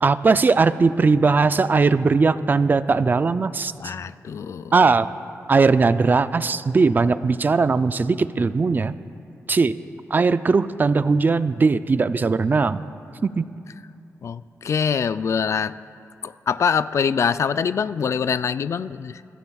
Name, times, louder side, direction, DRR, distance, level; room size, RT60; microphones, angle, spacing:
voice 1, 0.0-3.9 4.7-5.1 5.5-8.9 9.5-9.7 10.1-12.8 13.2-13.5, right 4 dB, 35° right, 13 dB, 0.4 m, -19 dB
voice 2, 3.8-4.7 14.2-15.8 16.2-19.2, left 6 dB, 60° left, 14 dB, 0.4 m, -24 dB
23.5 x 13.0 x 2.3 m, 2.6 s
wide cardioid pair, 100°, 6 cm